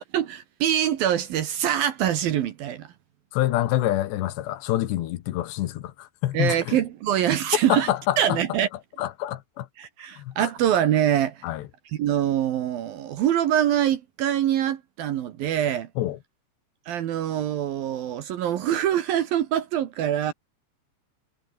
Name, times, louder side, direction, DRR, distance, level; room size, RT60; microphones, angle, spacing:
voice 1, 0.0-2.9 6.3-7.9 8.2-8.7 9.8-11.4 11.9-15.9 16.9-20.3, right 10 dB, 65° right, 2.7 m, -24 dB
voice 2, 3.3-6.8 7.7-8.4 9.0-9.7 10.2-10.5 11.4-11.6 16.0-16.2, left 14 dB, 75° left, 3.4 m, -26 dB
omnidirectional pair, 5.2 m